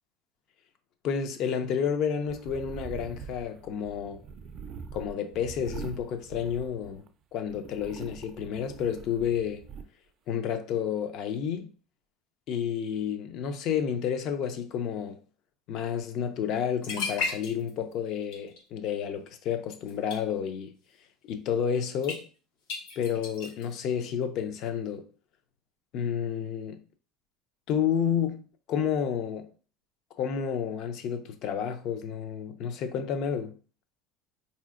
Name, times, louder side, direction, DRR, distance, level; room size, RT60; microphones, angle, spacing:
voice 1, 1.0-4.2 4.9-7.0 7.3-9.7 10.3-11.7 12.5-15.2 15.7-20.7 21.3-22.3 23.0-25.1 25.9-26.8 27.7-29.5 30.2-33.5, left 8 dB, 50° left, 0.5 m, -30 dB
sound 1, 2.3-7.1 7.4-9.8, right 6 dB, 35° right, 0.3 m, -44 dB
sound 2, 16.5-16.6 16.8-17.9 18.2-18.6 19.9-20.2 22.0-22.2 22.7-23.7, left 4 dB, 85° left, 1.0 m, -34 dB
4.0 x 2.7 x 2.4 m
cardioid pair, 155°, 0 cm